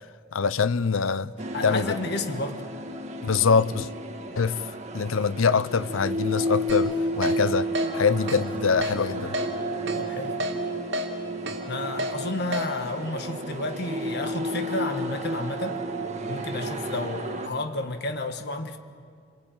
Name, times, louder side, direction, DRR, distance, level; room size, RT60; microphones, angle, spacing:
voice 1, 0.3-1.3 1.6-2.0 3.2-3.9 4.4-4.6 4.9-9.4, left 5 dB, 80° left, 0.6 m, -24 dB
sound 1, 1.4-17.5, right 1 dB, 35° right, 1.6 m, -32 dB
voice 2, 1.5-2.7 9.9-10.4 11.7-15.8 16.2-18.8, left 2 dB, 55° left, 1.6 m, -31 dB
Keyboard (musical), 6.7-6.8 7.2-7.4 7.8-7.9 8.3-8.4 8.8-9.0 9.3-9.5 9.9-10.0 10.4-10.5 10.9-11.1 11.5-11.6 12.0-12.1 12.5-12.7, equal, 60° right, 2.9 m, -29 dB
28.5 x 22.5 x 9.0 m
head